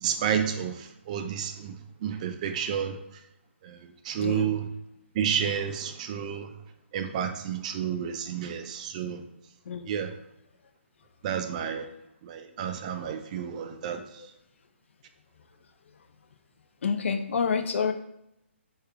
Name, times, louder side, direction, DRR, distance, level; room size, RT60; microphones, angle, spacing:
voice 1, 0.0-1.8 2.0-3.0 3.6-4.7 5.1-6.5 6.9-9.2 9.9-10.1 11.2-11.9 12.2-14.0, right 8 dB, 35° right, 7 dB, 0.3 m, -30 dB
voice 2, 4.2-4.5 9.7-9.9 14.2-14.3 16.8-17.9, left 6 dB, 65° left, 8 dB, 0.4 m, -28 dB
3.3 x 2.3 x 3.5 m, 0.84 s
hypercardioid pair, 140°, 7 cm